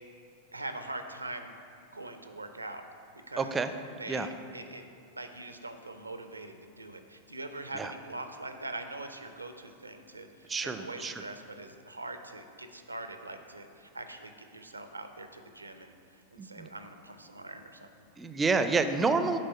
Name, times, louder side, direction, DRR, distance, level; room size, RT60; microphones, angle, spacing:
voice 1, 0.5-1.6 1.9-2.8 3.3-3.6 4.0-4.8 5.2-16.0 16.3-18.1, right 2 dB, 80° right, 8 dB, 0.5 m, -42 dB
voice 2, 3.4-3.7 4.1-4.3 7.7-7.9 10.5-11.1 16.4-16.7 18.2-19.4, right 4 dB, 15° right, 9 dB, 0.4 m, -29 dB
7.4 x 4.5 x 5.7 m, 2.7 s
figure-of-eight pair, 90°, 0 cm